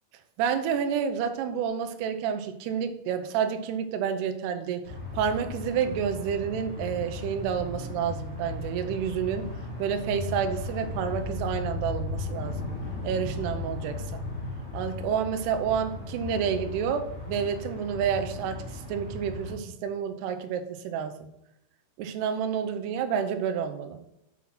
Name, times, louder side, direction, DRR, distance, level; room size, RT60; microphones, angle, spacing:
voice 1, 0.4-4.8 5.1-9.5 9.8-12.6 13.0-14.2 14.7-21.3 22.0-24.0, right 7 dB, 85° right, 7 dB, 2.3 m, -29 dB
sound 1, 4.8-19.5, left 2 dB, 70° left, 0.6 m, -36 dB
7.3 x 5.6 x 5.9 m, 0.86 s
omnidirectional pair, 5.7 m